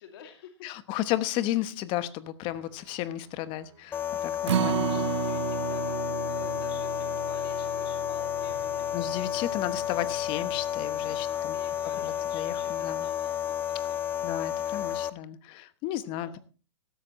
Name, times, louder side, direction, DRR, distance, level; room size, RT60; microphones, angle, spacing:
voice 1, 0.0-0.7 4.2-9.1 11.0-14.1 16.2-16.4, left 8 dB, 55° left, 4 dB, 2.5 m, -50 dB
voice 2, 0.6-5.1 8.9-11.6 12.0-13.1 14.2-16.4, left 13 dB, 35° left, 14 dB, 1.1 m, -33 dB
sound 1, 2.4-10.4, right 6 dB, 40° right, 6.2 m, -59 dB
sound 2, 3.9-15.1, left 9 dB, 15° left, 0.5 m, -31 dB
Acoustic guitar, 4.5-10.8 11.2-11.3 11.7-11.8, right 10 dB, 75° right, 0.8 m, -33 dB
16.0 x 13.5 x 3.1 m, 0.36 s
hypercardioid pair, 125°, 15 cm